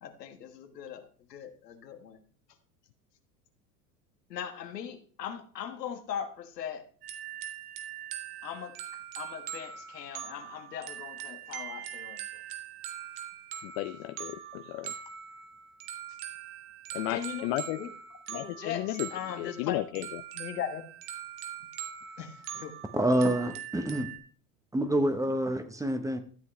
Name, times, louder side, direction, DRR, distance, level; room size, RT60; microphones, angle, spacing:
voice 1, 0.0-2.2 4.3-6.9 8.4-8.8 9.1-12.2 17.1-17.9 18.3-20.8 22.2-22.7, left 8 dB, 90° left, 7 dB, 1.5 m, -39 dB
sound 1, 7.0-24.2, right 10 dB, 50° right, 1.5 m, -42 dB
voice 2, 13.6-14.9 16.9-17.8 18.3-19.1 19.4-20.0, left 17 dB, 55° left, 11 dB, 0.6 m, -34 dB
voice 3, 22.9-24.1 24.7-26.2, right 1 dB, 5° right, 9 dB, 0.9 m, -27 dB
13.0 x 7.6 x 3.2 m, 0.42 s
hypercardioid pair, 100°, 47 cm